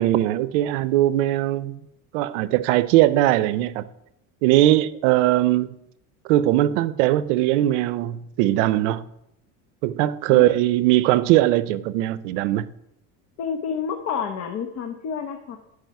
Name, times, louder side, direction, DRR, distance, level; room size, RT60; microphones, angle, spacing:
voice 1, 0.0-1.8 2.1-3.9 4.4-5.8 6.2-9.1 9.8-12.7, right 14 dB, 85° right, 0.6 m, -20 dB
voice 2, 13.4-15.6, left 6 dB, 45° left, 0.9 m, -29 dB
10.5 x 4.8 x 4.7 m
supercardioid pair, 120°, 36 cm